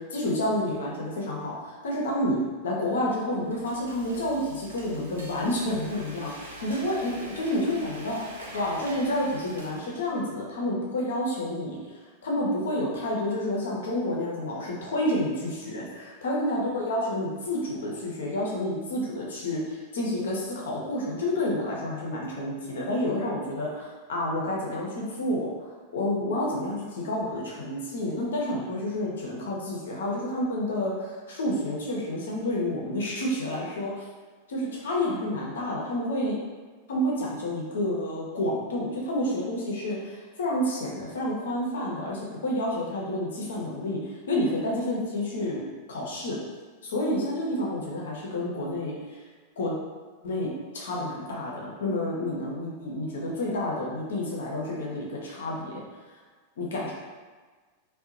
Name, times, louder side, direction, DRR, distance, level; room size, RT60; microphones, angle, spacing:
voice 1, 0.0-8.2 8.5-11.8 12.2-34.1 34.5-36.3 36.9-46.4 46.9-49.2 49.6-49.8 50.2-55.8 56.6-56.9, left 1 dB, 65° left, -3 dB, 0.6 m, -29 dB
Frying (food), 3.2-10.2, right 1 dB, 70° right, 0.4 m, -45 dB
2.7 x 2.1 x 2.5 m, 1.4 s
figure-of-eight pair, 90°, 0 cm